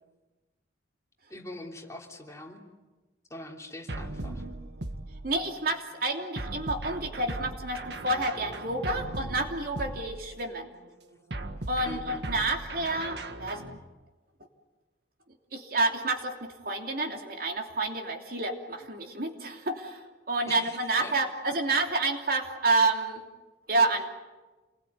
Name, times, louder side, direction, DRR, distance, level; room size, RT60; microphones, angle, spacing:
voice 1, 1.3-2.6 3.3-4.4 11.8-12.2 20.4-21.1, left 1 dB, 15° left, 1 dB, 3.1 m, -43 dB
sound 1, 3.9-5.6 6.4-10.5 11.3-13.8, right 2 dB, 70° right, 1.8 m, -38 dB
voice 2, 4.2-4.5 5.2-10.7 11.7-13.7 15.5-23.2 23.7-24.1, right 2 dB, 55° right, 3 dB, 3.0 m, -29 dB
28.0 x 21.5 x 9.6 m, 1.2 s
head